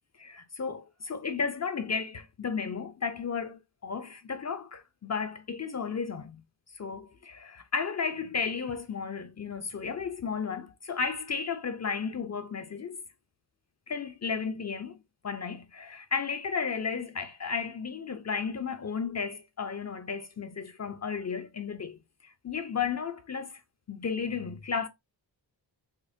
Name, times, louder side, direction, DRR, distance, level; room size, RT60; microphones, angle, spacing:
voice 1, 0.2-6.4 6.8-13.0 13.9-15.0 15.2-23.6 23.9-24.9, left 5 dB, 40° left, 0.5 m, -34 dB
5.1 x 2.1 x 2.5 m
wide cardioid pair, 125°, 44 cm